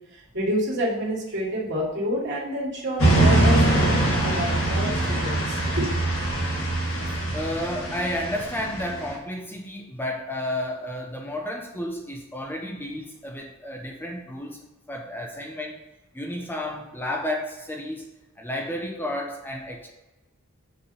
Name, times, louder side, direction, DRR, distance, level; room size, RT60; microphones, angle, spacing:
voice 1, 0.1-6.0, equal, 55° right, -4 dB, 2.3 m, -28 dB
sound 1, 3.0-9.1, right 1 dB, 70° left, 1.9 m, -23 dB
voice 2, 7.1-15.8 16.1-18.1 18.4-19.9, left 1 dB, 10° left, 1 dB, 0.6 m, -32 dB
6.5 x 3.7 x 5.6 m, 1.1 s
head